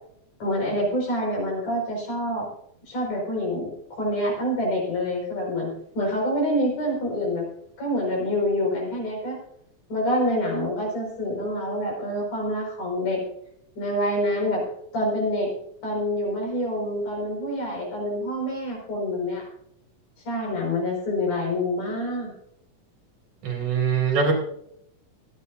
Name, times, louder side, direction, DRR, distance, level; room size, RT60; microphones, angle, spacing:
voice 1, 0.4-2.5 2.9-5.7 6.0-7.5 7.8-9.4 9.9-13.2 13.8-14.6 14.9-15.5 15.8-19.5 20.3-22.3, left 1 dB, 75° left, -2 dB, 7.0 m, -26 dB
voice 2, 23.4-24.3, right 6 dB, 65° right, 1 dB, 4.3 m, -22 dB
25.0 x 9.5 x 2.7 m, 0.72 s
omnidirectional pair, 3.7 m